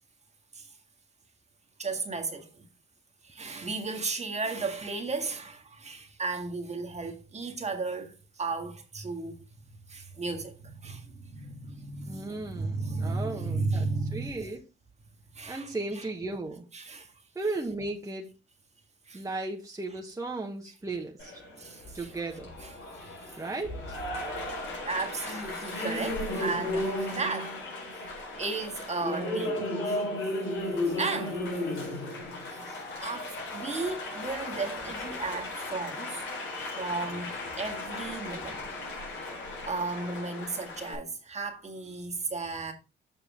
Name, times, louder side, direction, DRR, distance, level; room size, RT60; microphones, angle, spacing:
voice 1, 1.8-2.7 3.2-9.3 9.9-14.3 15.3-15.7 15.9-16.1 16.7-17.1 19.1-19.2 21.6-22.1 22.6-22.7 23.0-23.1 24.7-27.6 27.9-30.1 30.8-32.0 32.5-36.2 36.7-38.6 39.7-42.7, right 3 dB, 35° right, 1.8 m, -35 dB
voice 2, 12.1-13.9 14.1-14.6 15.5-16.7 17.3-18.3 19.1-21.4 21.9-22.6 23.4-24.0, right 2 dB, 15° right, 1.3 m, -35 dB
Applause, 21.2-41.0, left 1 dB, 80° left, 4.5 m, -35 dB
7.4 x 6.4 x 3.7 m
cardioid pair, 90°, 20 cm